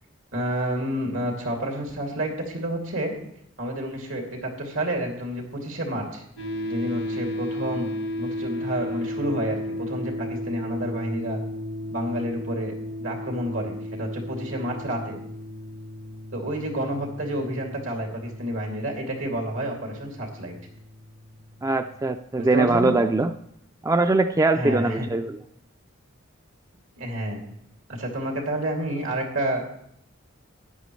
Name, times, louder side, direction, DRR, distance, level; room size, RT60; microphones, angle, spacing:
voice 1, 0.3-3.1 3.6-6.2 6.6-7.9 8.2-11.4 11.9-12.7 13.0-15.2 16.3-20.5 22.4-22.9 24.5-25.1 27.0-27.4 27.9-29.6, right 1 dB, 85° right, 1 dB, 2.6 m, -29 dB
sound 1, 6.4-21.6, left 1 dB, 85° left, 1.4 m, -34 dB
voice 2, 21.6-23.3 23.8-25.4, right 2 dB, 15° right, 9 dB, 0.3 m, -22 dB
13.5 x 9.7 x 3.1 m, 0.74 s
head